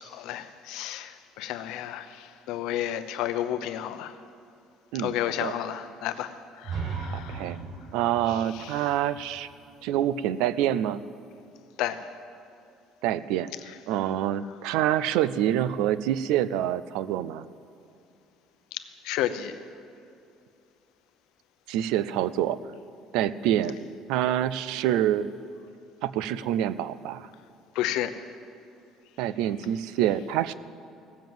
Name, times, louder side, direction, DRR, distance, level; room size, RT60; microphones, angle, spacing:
voice 1, 0.0-4.2 5.0-7.5 8.5-8.9 11.8-12.0 18.7-19.6 27.7-28.2, left 12 dB, 80° left, 0.7 m, -32 dB
voice 2, 4.9-5.5 7.1-7.6 7.9-9.5 9.8-11.0 13.0-13.5 13.9-17.4 21.7-22.6 23.1-25.3 26.0-27.3 29.2-30.5, right 11 dB, 90° right, 0.4 m, -26 dB
sound 1, 6.6-10.5, right 5 dB, 45° right, 1.1 m, -37 dB
17.0 x 7.2 x 7.7 m
cardioid pair, 145°, 0 cm